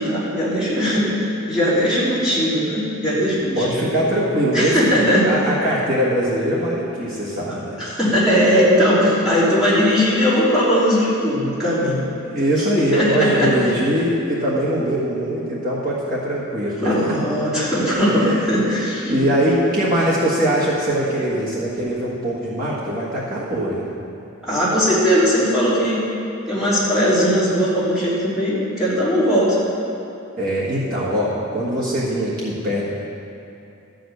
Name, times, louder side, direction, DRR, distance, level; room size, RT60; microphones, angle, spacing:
voice 1, 0.0-3.8 4.5-5.3 7.4-12.0 12.7-13.5 16.8-19.1 24.4-26.0 26.5-29.6, equal, 5° right, -11 dB, 3.1 m, -19 dB
voice 2, 3.5-5.0 5.2-7.8 12.2-16.9 17.8-18.6 19.0-23.8 30.4-32.9, right 1 dB, 40° right, -7 dB, 1.5 m, -22 dB
13.0 x 5.2 x 7.9 m, 2.8 s
head